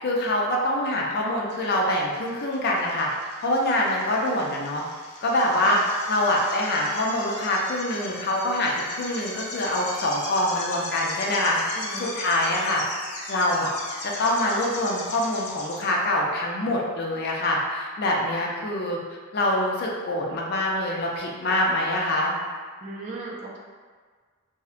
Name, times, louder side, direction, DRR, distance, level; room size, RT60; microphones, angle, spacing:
voice 1, 0.0-3.1 3.4-4.8 5.2-5.8 6.1-12.8 13.3-13.7 14.0-19.0 19.3-22.3, left 1 dB, 50° left, -2 dB, 0.4 m, -25 dB
sound 1, 1.5-15.8, left 2 dB, 85° left, 0.6 m, -38 dB
voice 2, 11.8-12.1 22.8-23.6, right 2 dB, 35° right, -3 dB, 0.4 m, -36 dB
2.7 x 2.0 x 2.4 m, 1.5 s
head